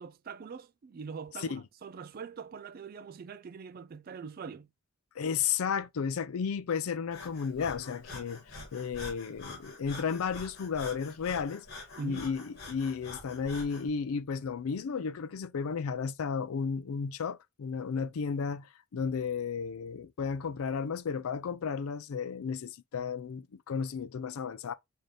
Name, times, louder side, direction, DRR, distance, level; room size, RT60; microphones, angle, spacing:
voice 1, 0.0-4.7 12.0-12.3, right 5 dB, 40° right, 0.3 m, -43 dB
voice 2, 5.2-11.7 12.0-24.7, left 6 dB, 70° left, 0.4 m, -33 dB
Breathing, 7.1-13.9, left 2 dB, 45° left, 1.4 m, -46 dB
3.3 x 2.8 x 3.7 m
head